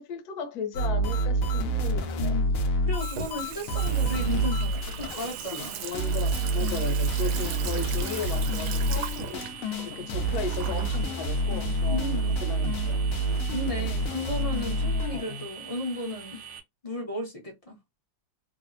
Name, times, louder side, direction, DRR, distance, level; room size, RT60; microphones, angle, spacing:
voice 1, 0.0-2.4 5.5-9.4 9.8-13.0 15.1-15.5, left 6 dB, 65° left, 1.1 m, -36 dB
sound 1, 0.7-5.3 5.6-5.7 5.9-15.2, right 2 dB, 85° left, 0.7 m, -28 dB
Water tap faucet / Sink (filling or washing), 1.1-12.8, right 6 dB, 90° right, 1.4 m, -40 dB
voice 2, 2.2-2.5 2.8-5.8 6.6-6.8 11.9-12.4 13.5-16.4 16.8-17.8, left 2 dB, 40° left, 0.5 m, -34 dB
sound 2, 3.8-16.6, right 8 dB, 60° right, 0.9 m, -44 dB
3.2 x 2.0 x 2.5 m
omnidirectional pair, 2.1 m